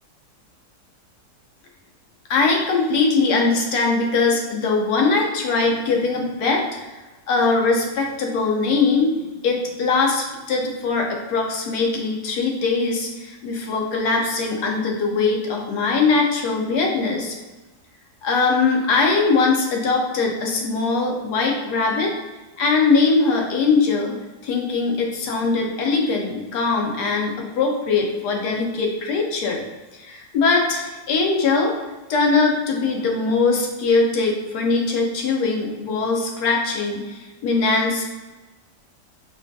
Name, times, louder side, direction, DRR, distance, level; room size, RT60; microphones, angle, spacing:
voice 1, 2.3-6.9 7.3-17.3 18.2-22.1 22.6-29.6 29.9-31.7 32.1-38.0, left 4 dB, 75° left, 0 dB, 1.2 m, -21 dB
4.7 x 2.3 x 2.6 m, 1.2 s
omnidirectional pair, 1.8 m